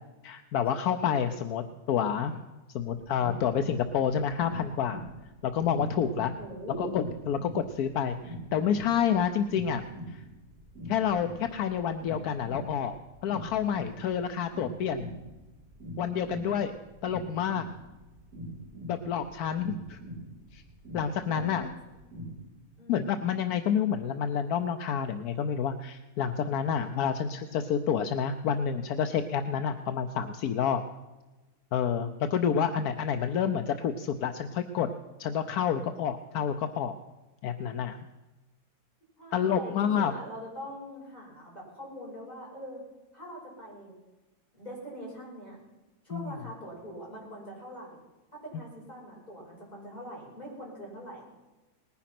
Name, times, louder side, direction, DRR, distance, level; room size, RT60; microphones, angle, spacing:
voice 1, 0.2-2.4 2.7-5.0 5.4-6.3 6.8-9.8 10.1-10.2 10.9-13.0 13.2-15.1 16.0-16.7 17.0-17.6 18.9-20.0 20.5-20.6 20.9-21.7 22.9-30.8 31.7-34.9 35.2-36.9 37.4-38.0 39.3-40.1 46.1-46.3, left 8 dB, 75° left, 8 dB, 1.2 m, -29 dB
sound 1, 3.0-22.4, right 1 dB, 65° right, 5.3 m, -43 dB
voice 2, 6.4-6.9 21.3-21.7 22.8-23.2 39.2-42.8 43.1-43.9 44.5-45.6 46.0-48.0 48.3-51.2, right 1 dB, 25° left, -5 dB, 5.8 m, -43 dB
19.5 x 10.0 x 5.8 m, 1.1 s
omnidirectional pair, 1.7 m